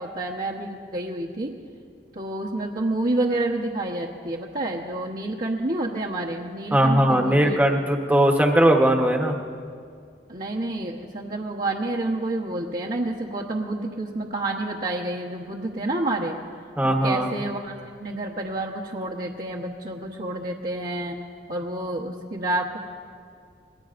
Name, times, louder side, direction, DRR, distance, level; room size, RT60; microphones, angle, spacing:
voice 1, 0.0-1.5 2.1-7.6 10.3-16.4 16.8-21.2 21.5-22.8, right 2 dB, 50° right, -4 dB, 1.1 m, -29 dB
voice 2, 6.7-9.3 16.8-17.4, right 1 dB, 10° right, 2 dB, 1.1 m, -19 dB
26.5 x 20.5 x 2.6 m, 2.2 s
head